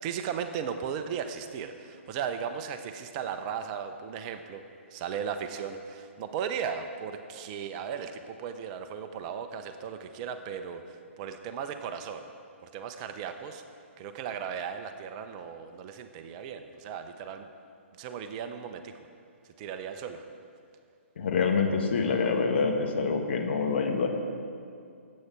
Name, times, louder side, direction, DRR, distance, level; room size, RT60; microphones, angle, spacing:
voice 1, 0.0-4.6 4.9-12.2 12.6-13.6 14.0-17.5 18.0-18.9 19.6-20.2, right 7 dB, 30° right, 8 dB, 0.8 m, -36 dB
voice 2, 21.2-24.1, left 5 dB, 55° left, 2 dB, 1.7 m, -26 dB
20.0 x 8.5 x 4.6 m, 2.4 s
figure-of-eight pair, 130°, 7 cm